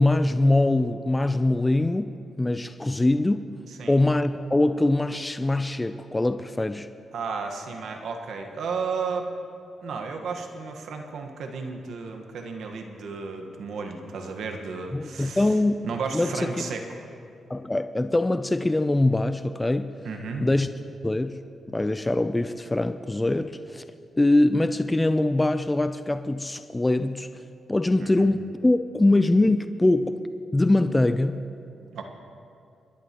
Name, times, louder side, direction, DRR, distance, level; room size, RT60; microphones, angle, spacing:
voice 1, 0.0-3.5 3.9-6.9 14.9-16.5 17.5-19.9 20.4-20.7 21.0-21.4 21.7-23.8 24.2-27.3 27.7-30.2 30.5-31.4, left 2 dB, 20° left, 11 dB, 0.5 m, -23 dB
voice 2, 7.1-9.3 9.8-15.5 15.8-16.8 20.0-20.5 28.0-28.3 31.9-32.0, right 5 dB, 80° right, 4 dB, 1.4 m, -33 dB
28.0 x 11.0 x 3.0 m, 2.5 s
cardioid pair, 60°, 0 cm